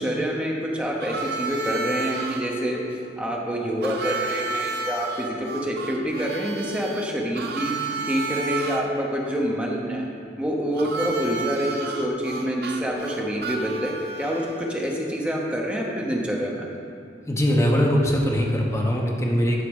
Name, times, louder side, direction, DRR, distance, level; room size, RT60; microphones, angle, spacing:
voice 1, 0.0-2.8 3.2-7.7 8.0-10.0 10.4-16.7, equal, 5° right, -2 dB, 0.8 m, -27 dB
Harmonica, 1.0-2.4 3.8-8.8 10.8-14.7, right 4 dB, 60° right, 0.6 m, -31 dB
voice 2, 17.3-19.6, equal, 15° left, -1 dB, 0.9 m, -21 dB
10.0 x 4.2 x 5.3 m, 2.5 s
head